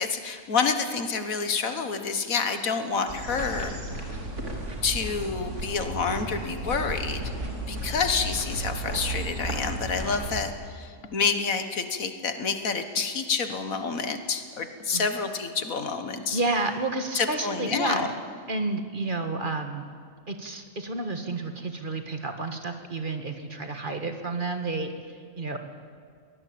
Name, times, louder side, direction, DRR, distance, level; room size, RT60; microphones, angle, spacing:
voice 1, 0.0-3.8 4.8-7.2 7.7-16.4 17.2-18.1, left 5 dB, 80° left, 8 dB, 1.9 m, -28 dB
sound 1, 3.1-10.4, right 1 dB, 55° right, 3.2 m, -34 dB
voice 2, 16.3-18.0 18.5-19.8 20.3-24.9 25.4-25.6, right 3 dB, 40° right, 6 dB, 1.7 m, -30 dB
23.0 x 18.0 x 8.7 m, 2.1 s
omnidirectional pair, 1.4 m